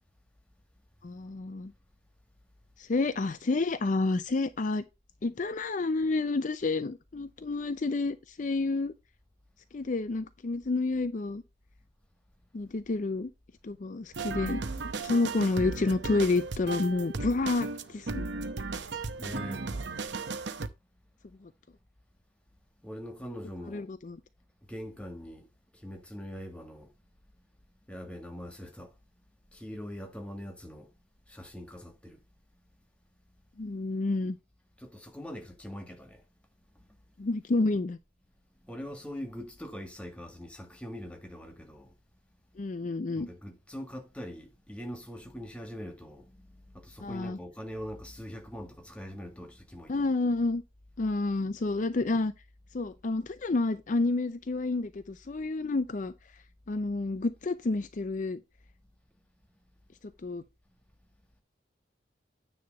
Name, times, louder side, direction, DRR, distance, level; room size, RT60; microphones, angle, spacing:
voice 1, 1.0-1.7 2.8-4.8 5.2-8.9 9.7-11.4 12.5-13.3 13.6-14.6 15.0-18.3 21.4-21.5 23.7-24.2 33.6-34.4 37.2-38.0 42.6-43.3 47.0-47.4 49.9-50.6 51.0-52.3 52.7-56.1 56.7-58.4 60.2-60.4, left 3 dB, 45° left, 0.5 m, -29 dB
sound 1, 14.1-20.7, right 3 dB, 85° right, 0.8 m, -36 dB
voice 2, 19.1-19.6 22.8-23.9 24.7-25.5 25.7-26.9 27.9-28.9 29.5-30.9 31.3-32.2 34.8-36.2 36.8-36.9 38.6-41.9 43.2-50.1, equal, 5° left, 1.7 m, -42 dB
9.6 x 3.3 x 6.5 m
head